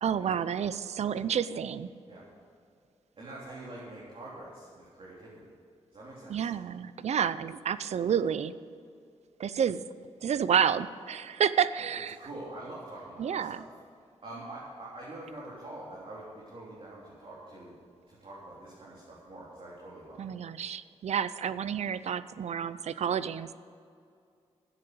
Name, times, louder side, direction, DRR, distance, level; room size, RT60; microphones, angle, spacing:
voice 1, 0.0-1.9 6.3-8.5 9.4-9.8 10.2-12.2 13.2-13.6 20.2-23.5, right 8 dB, 70° right, 15 dB, 0.6 m, -29 dB
voice 2, 3.2-5.5 5.9-6.4 12.2-13.7 14.2-17.8 18.1-20.3, right 1 dB, 55° right, -7 dB, 3.8 m, -45 dB
12.5 x 9.7 x 8.0 m, 2.4 s
cardioid pair, 65°, 12 cm